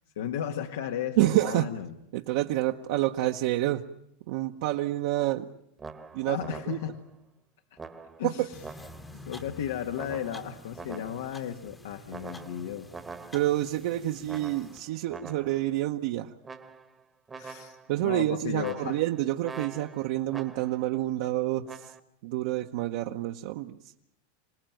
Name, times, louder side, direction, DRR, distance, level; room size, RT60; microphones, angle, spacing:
voice 1, 0.1-1.9 6.3-7.0 8.2-8.6 9.2-12.9 17.4-17.8 18.0-19.0, left 9 dB, 85° left, 4 dB, 1.5 m, -34 dB
voice 2, 1.2-1.7 2.1-3.8 4.3-5.5 6.1-6.4 6.7-6.8 8.2-8.5 13.3-16.3 17.9-21.9 22.2-23.8, right 15 dB, 60° right, 3 dB, 1.0 m, -28 dB
sound 1, 5.8-7.1 7.8-9.2 9.9-11.5 12.1-13.7 14.3-15.7 16.4-17.0 17.3-18.0 18.6-20.9 21.6-22.0, right 4 dB, 10° right, 1.1 m, -45 dB
sound 2, 8.5-14.8, left 2 dB, 10° left, 1.0 m, -49 dB
26.5 x 18.5 x 9.2 m, 0.79 s
supercardioid pair, 160°, 0 cm